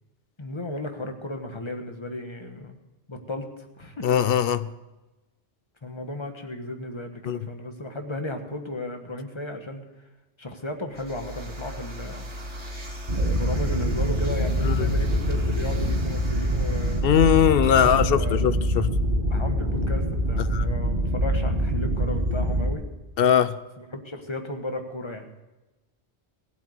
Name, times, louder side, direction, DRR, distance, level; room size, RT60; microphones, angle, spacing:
voice 1, 0.4-2.8 3.1-4.1 5.8-9.8 10.4-12.3 13.2-18.4 19.3-22.8 23.8-25.3, left 1 dB, 25° left, 1.4 m, -35 dB
voice 2, 4.0-4.7 7.3-7.4 14.6-14.9 17.0-18.9 20.5-20.6 23.2-23.5, left 9 dB, 60° left, 0.7 m, -20 dB
sound 1, 10.9-17.1, equal, 80° right, 2.6 m, -38 dB
sound 2, 13.1-22.7, equal, 50° right, 1.7 m, -25 dB
16.5 x 8.2 x 6.6 m
omnidirectional pair, 1.2 m